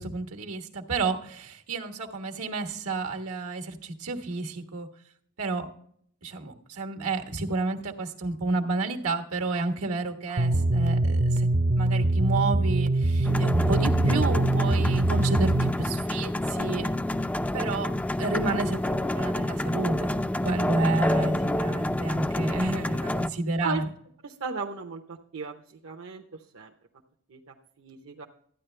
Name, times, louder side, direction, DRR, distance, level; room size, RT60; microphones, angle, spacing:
voice 1, 0.0-4.9 5.4-5.7 6.2-11.5 11.8-16.9 17.5-17.9 18.2-20.1 20.4-23.9, right 3 dB, 85° right, 5 dB, 1.4 m, -30 dB
sound 1, 10.4-15.7, right 2 dB, 35° right, 0.6 m, -23 dB
sound 2, 13.2-23.3, left 1 dB, 5° left, 0.3 m, -28 dB
voice 2, 24.2-25.0 25.3-25.5 25.8-26.2 26.5-26.7 27.3-27.4 27.8-28.3, right 4 dB, 70° right, 0 dB, 0.9 m, -35 dB
13.5 x 9.9 x 3.3 m, 0.62 s
head